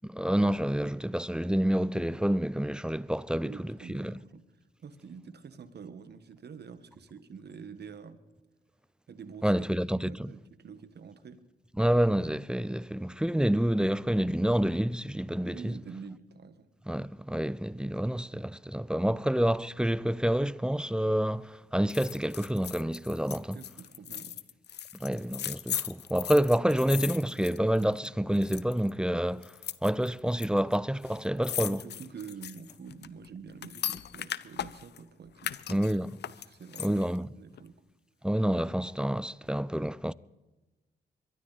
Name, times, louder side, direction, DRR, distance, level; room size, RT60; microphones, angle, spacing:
voice 1, 0.0-4.2 9.4-10.3 11.8-15.7 16.9-23.6 24.9-29.5 29.8-31.8 35.7-36.2 36.8-37.3 38.2-40.1, equal, 5° right, 0.5 m, -28 dB
voice 2, 3.4-4.4 4.8-8.2 9.1-9.6 10.0-11.4 15.5-16.7 23.5-24.4 31.7-35.8 36.5-37.7, right 6 dB, 60° right, 1.4 m, -47 dB
sound 1, 21.9-28.1 28.3-28.9 29.4-30.5 30.7-30.8 31.0-35.0 35.4-37.2 37.5-37.6, left 10 dB, 65° left, 0.6 m, -38 dB
22.5 x 12.5 x 4.1 m
supercardioid pair, 50°, 19 cm